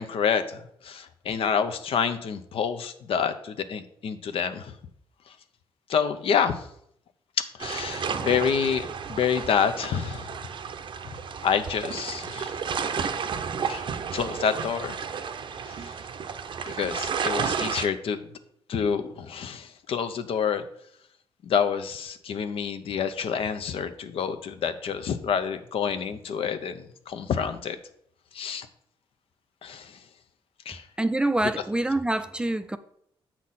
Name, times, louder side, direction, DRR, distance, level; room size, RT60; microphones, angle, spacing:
voice 1, 0.0-4.7 5.9-6.6 7.4-10.3 11.4-12.6 13.7-13.9 14.1-15.0 15.7-15.9 16.8-18.2 18.7-20.6 21.4-27.8 28.3-28.7 29.6-29.9 30.7-30.8, left 7 dB, 65° left, 0.7 m, -28 dB
sound 1, 7.6-17.9, right 6 dB, 55° right, 0.6 m, -32 dB
voice 2, 31.0-32.8, right 1 dB, 10° right, 0.4 m, -25 dB
7.4 x 5.9 x 4.1 m
cardioid pair, 100°, 10 cm